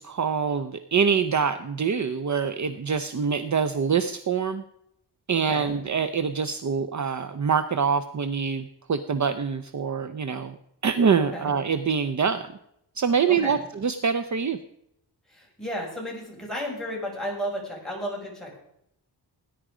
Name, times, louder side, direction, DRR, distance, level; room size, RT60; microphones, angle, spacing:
voice 1, 0.0-4.6 5.3-10.5 10.8-12.5 13.0-14.6, right 6 dB, 45° right, 11 dB, 0.7 m, -25 dB
voice 2, 5.3-5.8 11.2-11.5 13.3-13.7 15.3-18.6, equal, ahead, -4 dB, 6.4 m, -33 dB
18.5 x 10.5 x 5.0 m, 0.76 s
wide cardioid pair, 145°, 40 cm